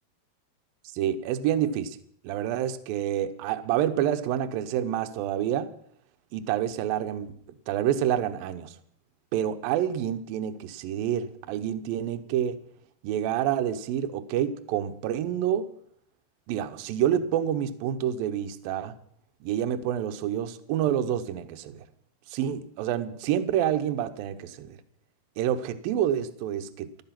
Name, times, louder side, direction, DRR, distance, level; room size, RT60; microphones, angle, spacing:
voice 1, 0.9-2.0 2.2-5.7 6.3-7.4 7.7-8.8 9.3-12.6 13.0-15.7 16.5-18.9 19.4-21.9 22.3-24.8 25.4-27.0, right 10 dB, 70° right, 2.3 m, -28 dB
15.0 x 12.5 x 5.9 m
omnidirectional pair, 5.1 m